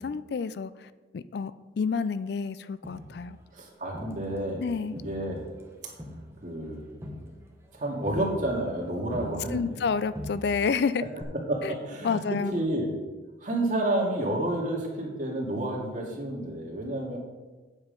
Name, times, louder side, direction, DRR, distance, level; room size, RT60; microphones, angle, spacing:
voice 1, 0.0-3.4 4.6-5.0 9.5-11.1 11.6-11.7 12.0-12.7, left 5 dB, 60° left, 15 dB, 0.4 m, -29 dB
Crowd, 2.8-4.6 5.0-9.9 10.1-10.8 11.2-11.3, left 1 dB, 15° right, 1.3 m, -43 dB
voice 2, 3.5-4.6 4.9-5.4 5.8-5.9 6.4-6.8 7.7-9.8 11.5-12.2 12.5-12.9 13.4-17.2, right 1 dB, 45° right, -2 dB, 2.2 m, -30 dB
8.9 x 7.5 x 5.2 m, 1.3 s
head